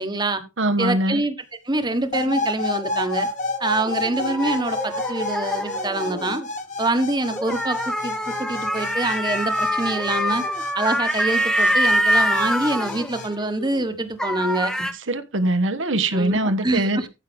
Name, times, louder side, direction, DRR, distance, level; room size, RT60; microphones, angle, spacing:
voice 1, 0.0-0.4 0.8-1.3 1.6-3.3 3.6-6.4 6.8-10.4 10.7-14.9 16.1-17.1, right 2 dB, 20° right, 1.3 m, -25 dB
voice 2, 0.6-1.2 15.1-17.0, right 1 dB, 75° right, 1.3 m, -22 dB
sound 1, 1.7-6.5 7.3-13.9 14.2-14.9, equal, 5° left, 1.0 m, -25 dB
sound 2, 2.1-13.3, left 2 dB, 40° left, 1.3 m, -31 dB
14.5 x 6.6 x 3.5 m
head